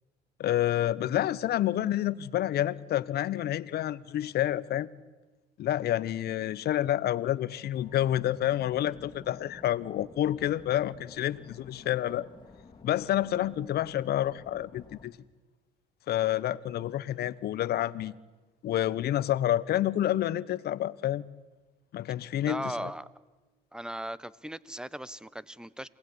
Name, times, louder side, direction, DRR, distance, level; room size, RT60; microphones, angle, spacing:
voice 1, 0.4-4.9 5.6-12.3 12.8-15.2 16.1-18.1 18.6-21.2 21.9-22.9, left 12 dB, 65° left, 18 dB, 1.1 m, -29 dB
sound 1, 7.8-15.1, left 4 dB, 25° left, 3.4 m, -52 dB
voice 2, 22.5-23.1 23.7-25.9, right 1 dB, 5° right, 19 dB, 1.2 m, -37 dB
27.5 x 19.0 x 9.8 m, 1.2 s
supercardioid pair, 75°, 18 cm